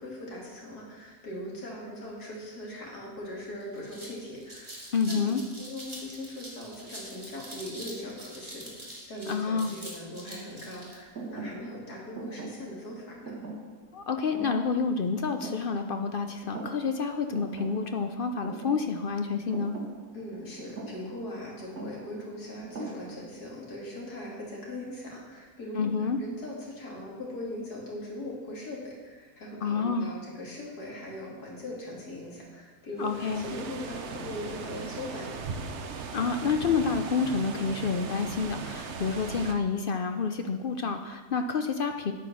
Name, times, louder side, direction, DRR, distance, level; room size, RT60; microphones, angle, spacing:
voice 1, 0.0-5.2 5.6-13.3 20.1-35.4, left 1 dB, 85° left, -3 dB, 3.1 m, -40 dB
sound 1, 3.2-3.3 3.6-11.0, right 1 dB, 20° right, 2.2 m, -44 dB
voice 2, 4.9-5.4 9.3-9.7 13.9-19.7 25.8-26.2 29.6-30.1 33.0-33.5 36.1-42.1, left 5 dB, 60° left, 6 dB, 0.5 m, -29 dB
Thump thud, 11.1-16.2 16.4-17.1 17.3-23.5, right 3 dB, 75° right, 2.0 m, -42 dB
sound 2, 33.0-39.5, right 5 dB, 55° right, 1.0 m, -38 dB
9.0 x 8.5 x 6.1 m, 1.4 s
omnidirectional pair, 1.6 m